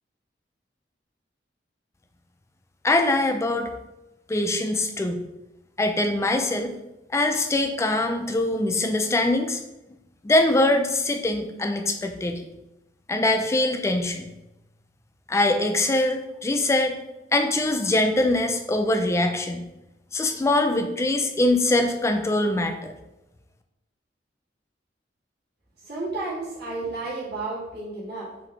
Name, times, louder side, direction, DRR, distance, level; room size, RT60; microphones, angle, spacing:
voice 1, 2.8-3.7 4.3-5.2 5.8-6.7 7.1-9.6 10.2-12.5 13.1-14.3 15.3-17.0 17.3-19.7 20.1-22.9, left 2 dB, 15° left, 5 dB, 0.3 m, -23 dB
voice 2, 25.8-28.3, right 3 dB, 65° right, -8 dB, 1.5 m, -32 dB
3.9 x 2.7 x 3.1 m, 0.95 s
head